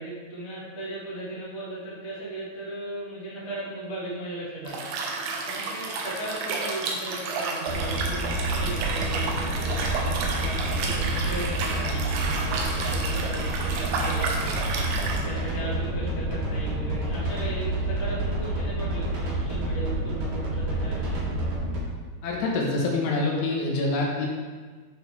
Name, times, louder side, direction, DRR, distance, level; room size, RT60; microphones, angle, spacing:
voice 1, 0.0-4.9 5.4-21.5, right 1 dB, 50° left, -8 dB, 0.8 m, -37 dB
Liquid, 4.7-15.2, right 4 dB, 75° right, 2.6 m, -31 dB
sound 1, 7.7-21.8, right 1 dB, 55° right, 2.7 m, -29 dB
voice 2, 22.2-24.3, left 2 dB, 75° left, -2 dB, 2.9 m, -26 dB
10.5 x 3.8 x 4.4 m, 1.4 s
omnidirectional pair, 5.2 m